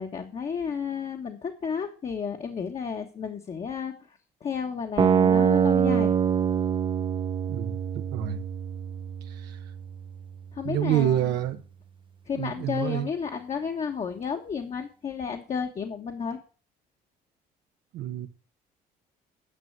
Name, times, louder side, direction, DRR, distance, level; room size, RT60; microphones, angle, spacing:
voice 1, 0.0-6.1 10.5-11.3 12.3-16.4, left 6 dB, 40° left, 3 dB, 1.3 m, -32 dB
sound 1, 5.0-11.0, right 8 dB, 30° right, 0.6 m, -25 dB
voice 2, 8.1-8.4 9.3-9.6 10.6-11.6 12.4-13.1 17.9-18.3, right 11 dB, 80° right, 5 dB, 1.0 m, -27 dB
10.0 x 6.1 x 8.0 m, 0.39 s
cardioid pair, 110°, 17 cm